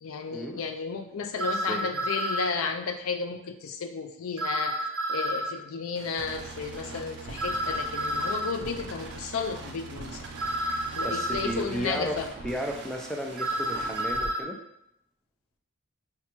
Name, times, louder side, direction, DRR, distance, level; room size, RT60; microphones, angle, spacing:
voice 1, 0.0-10.3 10.9-12.3, left 5 dB, 80° left, 7 dB, 0.4 m, -33 dB
sound 1, 1.4-2.5 4.4-5.5 7.4-8.5 10.4-11.5 13.4-14.4, right 1 dB, 75° right, 0.8 m, -30 dB
voice 2, 1.5-1.9 11.0-14.6, equal, 5° left, 2 dB, 0.3 m, -34 dB
sound 2, 5.9-14.3, right 3 dB, 50° right, 0.5 m, -42 dB
5.7 x 2.2 x 2.9 m, 0.79 s
head